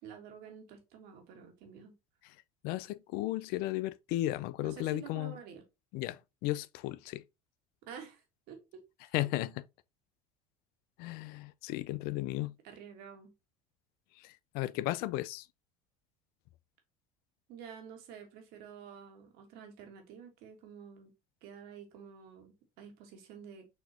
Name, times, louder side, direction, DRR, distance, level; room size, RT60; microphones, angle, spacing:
voice 1, 0.0-1.9 4.6-5.6 7.8-8.8 9.2-9.3 12.6-13.3 17.5-21.1 21.4-23.7, right 7 dB, 65° right, 1.7 m, -50 dB
voice 2, 2.6-5.4 5.9-7.2 9.1-9.7 11.0-12.5 14.2-15.5, left 16 dB, 65° left, 0.4 m, -35 dB
6.2 x 3.0 x 2.8 m
hypercardioid pair, 85°, 17 cm